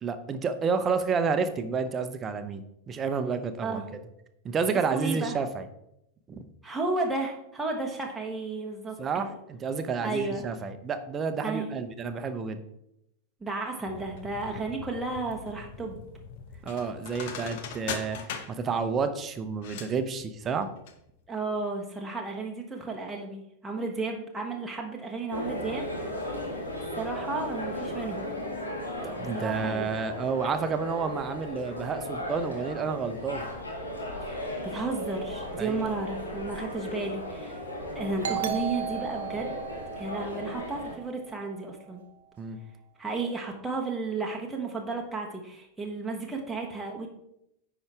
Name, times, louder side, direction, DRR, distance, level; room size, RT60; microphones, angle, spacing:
voice 1, 0.0-3.8 4.4-5.7 6.3-6.4 9.0-12.6 16.6-20.7 29.0-33.5 35.6-35.8 42.4-42.6, right 5 dB, 25° right, 9 dB, 0.7 m, -30 dB
voice 2, 4.9-5.4 6.6-9.3 10.0-10.4 11.4-11.7 13.4-16.0 21.3-25.9 26.3-26.4 26.9-28.3 29.3-29.9 34.2-37.6 37.9-39.5 40.0-42.0 43.0-47.1, right 3 dB, 5° right, -1 dB, 1.1 m, -33 dB
sound 1, 13.9-21.0 21.2-21.3, left 6 dB, 50° left, 0.8 m, -41 dB
sound 2, 25.3-40.9, left 1 dB, 75° left, 1.6 m, -36 dB
Doorbell, 38.2-41.6, right 10 dB, 60° right, 0.8 m, -36 dB
9.5 x 4.9 x 3.4 m, 0.81 s
figure-of-eight pair, 90°, 0 cm